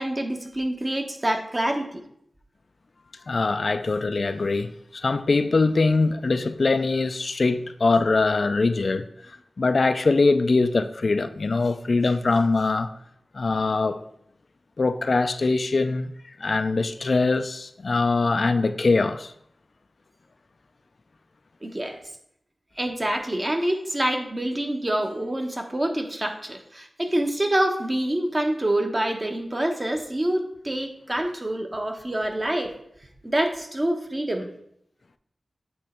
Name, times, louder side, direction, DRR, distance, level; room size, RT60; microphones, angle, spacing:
voice 1, 0.0-2.0 21.6-22.0 22.8-32.7 33.2-34.5, right 1 dB, 30° right, 1.0 m, -26 dB
voice 2, 3.3-12.9 13.3-14.0 14.8-16.1 16.4-19.3, left 3 dB, 65° left, 0.3 m, -22 dB
8.2 x 3.1 x 4.3 m
wide cardioid pair, 55°, 0 cm